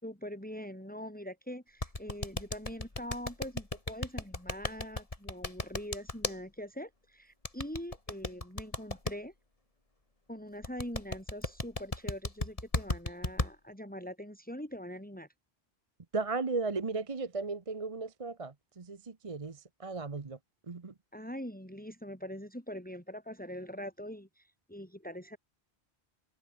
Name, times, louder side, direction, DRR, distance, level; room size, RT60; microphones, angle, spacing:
voice 1, 0.0-9.3 10.3-15.3 21.1-25.4, equal, 10° left, 5.3 m, -43 dB
sound 1, 1.8-6.3 7.4-9.1 10.6-13.5, left 2 dB, 30° left, 2.8 m, -34 dB
voice 2, 16.1-20.4 20.7-20.9, right 3 dB, 30° right, 1.0 m, -36 dB
omnidirectional pair, 1.1 m